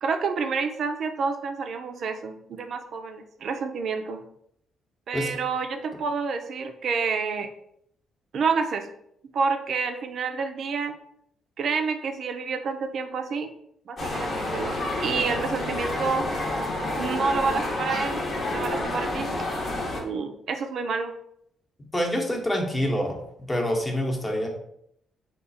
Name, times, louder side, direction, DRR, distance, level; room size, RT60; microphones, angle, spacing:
voice 1, 0.0-4.2 5.1-7.5 8.3-8.9 9.3-10.9 11.6-13.5 13.9-14.8 15.0-16.2 17.0-19.3 19.9-21.1, right 5 dB, 60° right, 7 dB, 0.5 m, -28 dB
sound 1, 14.0-20.0, left 1 dB, 45° left, 0.9 m, -29 dB
voice 2, 21.9-23.2 23.5-24.5, equal, 15° left, 0 dB, 0.9 m, -26 dB
3.7 x 2.4 x 4.0 m, 0.73 s
cardioid pair, 90°, 0 cm